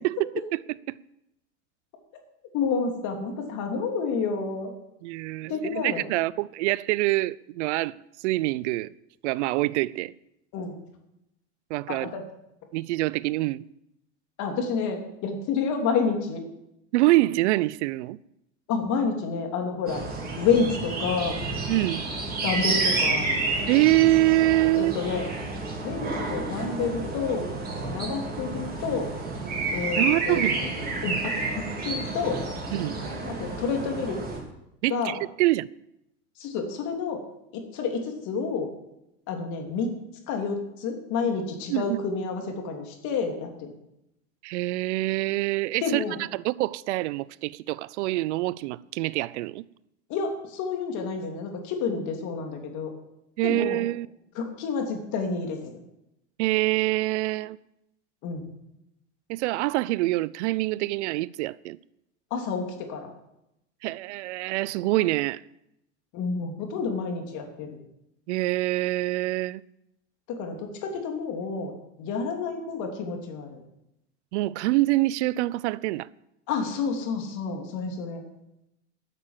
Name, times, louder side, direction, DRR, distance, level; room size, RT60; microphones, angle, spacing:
voice 1, 0.5-1.0 5.0-7.9 8.2-8.9 9.2-10.1 11.7-12.1 12.7-13.6 16.9-18.2 21.7-22.1 23.7-24.9 30.0-30.6 32.7-33.0 34.8-35.7 41.7-42.0 44.4-46.0 46.3-49.6 53.4-54.1 56.4-57.6 59.3-61.8 63.8-65.4 68.3-69.6 74.3-76.1, right 18 dB, 75° right, 0.6 m, -25 dB
voice 2, 2.5-4.7 5.5-6.0 10.5-10.7 11.9-12.2 14.4-16.4 18.7-20.0 20.4-21.4 22.4-23.3 24.8-25.3 25.8-27.5 27.9-29.1 29.7-30.5 31.0-32.4 33.3-34.2 34.9-35.1 36.4-37.2 37.5-38.7 39.3-39.9 40.3-43.7 45.8-46.1 50.1-52.9 53.4-53.8 54.3-55.7 58.2-58.5 62.3-63.1 66.1-67.7 70.3-71.7 72.0-73.6 76.5-78.2, left 5 dB, 55° left, 3.1 m, -29 dB
sound 1, 19.9-34.4, right 3 dB, 25° right, 3.8 m, -30 dB
12.0 x 6.8 x 7.3 m
hypercardioid pair, 105°, 35 cm